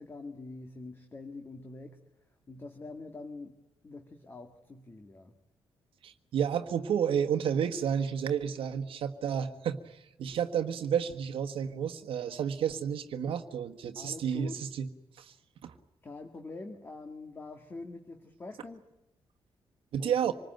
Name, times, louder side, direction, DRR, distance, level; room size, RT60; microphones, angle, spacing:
voice 1, 0.0-2.0 2.5-3.6 3.8-5.4 14.0-14.6 16.0-18.8 20.0-20.1, left 3 dB, 25° left, 5 dB, 1.9 m, -44 dB
voice 2, 6.0-14.9 15.2-15.3 15.6-15.7 19.9-20.3, right 8 dB, 80° right, 5 dB, 1.4 m, -31 dB
26.0 x 20.0 x 9.1 m, 0.93 s
wide cardioid pair, 155°, 9 cm